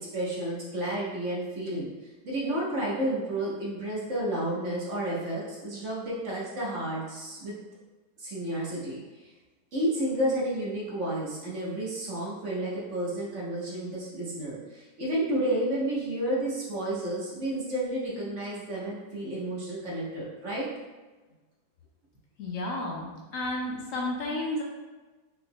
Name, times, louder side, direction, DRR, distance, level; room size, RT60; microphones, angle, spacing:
voice 1, 0.0-1.9 2.2-7.5 8.2-9.0 9.7-20.7, right 1 dB, 50° right, -6 dB, 1.4 m, -31 dB
voice 2, 22.4-24.6, left 2 dB, 60° left, -2 dB, 1.0 m, -32 dB
5.8 x 3.7 x 2.3 m, 1.2 s
omnidirectional pair, 1.7 m